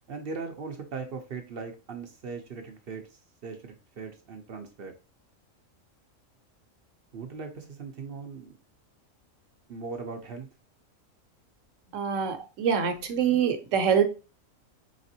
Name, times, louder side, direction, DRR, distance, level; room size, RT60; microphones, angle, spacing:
voice 1, 0.1-4.9 7.1-8.6 9.7-10.5, right 4 dB, 55° right, 0.8 m, -39 dB
voice 2, 11.9-14.0, right 7 dB, 70° right, 1.1 m, -25 dB
5.0 x 3.4 x 2.7 m
omnidirectional pair, 1.4 m